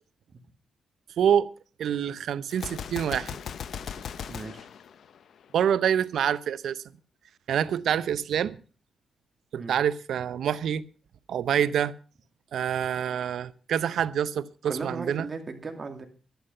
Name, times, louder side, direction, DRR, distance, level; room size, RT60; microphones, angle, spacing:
voice 1, 1.2-1.5 1.8-3.4 5.5-6.8 7.5-8.6 9.5-10.8 11.3-11.9 12.5-15.3, right 9 dB, 80° right, 0.7 m, -26 dB
Gunshot gunfire, 2.5-5.6, left 7 dB, 70° left, 0.7 m, -38 dB
voice 2, 4.3-4.7 9.6-9.7 14.6-16.1, right 4 dB, 35° right, 2.6 m, -37 dB
11.5 x 11.5 x 5.5 m
cardioid pair, 105°, 0 cm